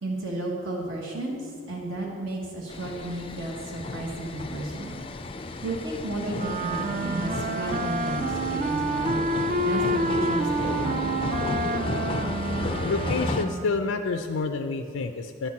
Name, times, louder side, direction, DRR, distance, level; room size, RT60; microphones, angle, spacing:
voice 1, 0.0-5.0 5.6-9.2 9.6-11.2, right 1 dB, 70° right, -2 dB, 1.3 m, -33 dB
sound 1, 2.7-13.4, left 2 dB, 25° left, 0.4 m, -33 dB
Wind instrument woodwind instrument, 6.3-13.7, right 2 dB, 40° right, 0.4 m, -29 dB
voice 2, 12.8-15.5, left 4 dB, 85° left, 6 dB, 0.4 m, -28 dB
10.5 x 4.4 x 7.1 m, 2.4 s
head